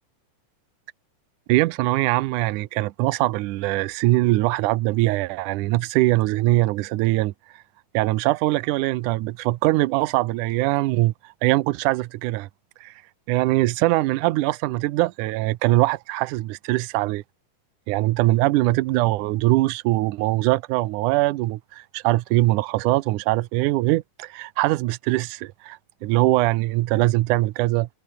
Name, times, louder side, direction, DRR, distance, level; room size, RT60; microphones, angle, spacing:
voice 1, 1.5-7.3 7.9-11.1 11.4-12.5 12.8-12.9 13.3-17.2 17.9-27.9, right 18 dB, 75° right, 2.1 m, -22 dB
omnidirectional pair, 3.8 m